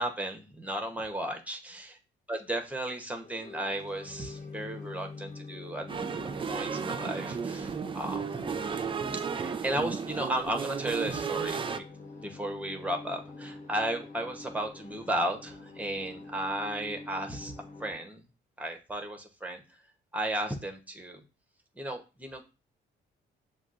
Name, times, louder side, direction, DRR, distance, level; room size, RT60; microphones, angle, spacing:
voice 1, 0.0-1.9 2.3-5.8 6.5-8.4 9.1-11.8 12.2-17.5 17.8-18.2 18.6-19.6 20.1-21.2 21.8-22.4, right 1 dB, 5° right, 4 dB, 0.9 m, -34 dB
sound 1, 3.2-17.9, left 3 dB, 40° left, 1.2 m, -45 dB
sound 2, 5.9-11.8, right 6 dB, 25° right, 0.4 m, -34 dB
7.0 x 2.3 x 2.5 m, 0.30 s
cardioid pair, 90°, 20 cm